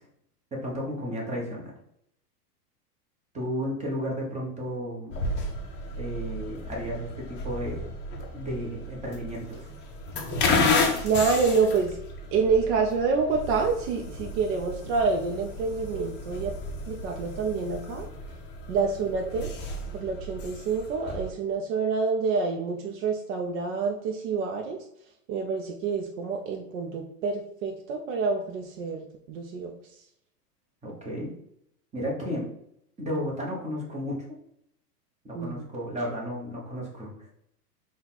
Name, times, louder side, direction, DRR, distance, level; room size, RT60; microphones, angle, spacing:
voice 1, 0.5-1.7 3.3-5.1 6.0-7.9 8.3-9.7 30.8-31.3 31.9-32.5 33.0-34.3 35.2-37.3, equal, 15° right, -3 dB, 1.2 m, -33 dB
sound 1, 5.1-21.3, left 3 dB, 25° left, 0.6 m, -32 dB
voice 2, 10.7-12.0 12.3-16.5 16.9-18.1 18.7-19.5 19.9-24.8 25.3-29.7 35.3-35.7, right 4 dB, 50° right, 2 dB, 0.6 m, -27 dB
3.9 x 2.4 x 4.1 m, 0.75 s
hypercardioid pair, 120°, 47 cm